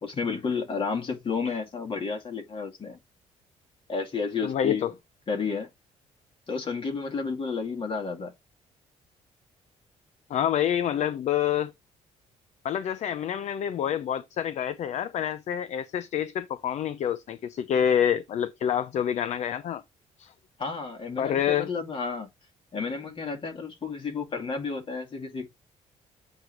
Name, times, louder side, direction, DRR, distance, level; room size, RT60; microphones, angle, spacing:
voice 1, 0.0-3.0 3.9-4.8 5.3-5.7 6.5-8.3 20.6-22.3 22.7-25.5, left 5 dB, 40° left, 2.2 m, -31 dB
voice 2, 4.4-4.9 10.3-11.7 12.6-19.8 20.2-20.3 21.2-21.7, left 9 dB, 60° left, 0.5 m, -27 dB
8.0 x 3.1 x 4.7 m
cardioid pair, 105°, 13 cm